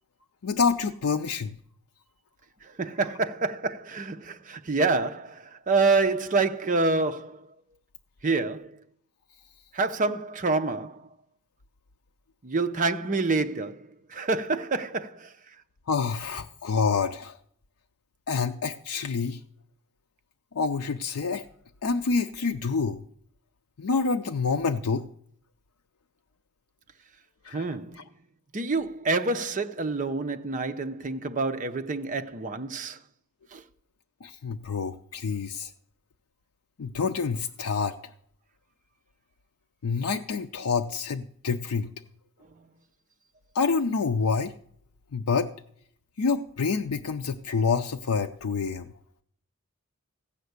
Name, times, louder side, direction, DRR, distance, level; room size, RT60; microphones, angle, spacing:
voice 1, 0.4-1.5 15.9-17.4 18.3-19.4 20.5-21.4 21.8-23.0 23.8-25.1 27.4-27.7 27.9-28.0 34.2-35.7 36.8-38.0 39.8-41.9 43.5-44.5 45.1-45.5 46.2-48.9, left 5 dB, 75° left, 0.5 m, -27 dB
voice 2, 2.8-7.5 8.2-8.7 9.7-11.0 12.4-15.3 27.5-28.0 28.5-33.0 33.5-33.6, right 3 dB, 35° right, 0.6 m, -27 dB
15.5 x 5.8 x 8.0 m
head